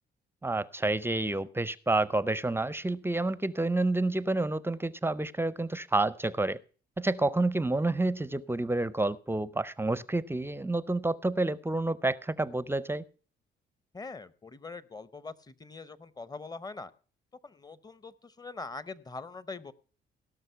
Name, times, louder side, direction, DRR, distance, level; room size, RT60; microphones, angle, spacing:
voice 1, 0.4-6.6 7.0-13.0, right 2 dB, 10° right, 18 dB, 0.5 m, -29 dB
voice 2, 13.9-16.9 17.4-19.7, left 3 dB, 20° left, 17 dB, 0.7 m, -43 dB
17.0 x 6.3 x 5.6 m, 0.40 s
cardioid pair, 90°, 20 cm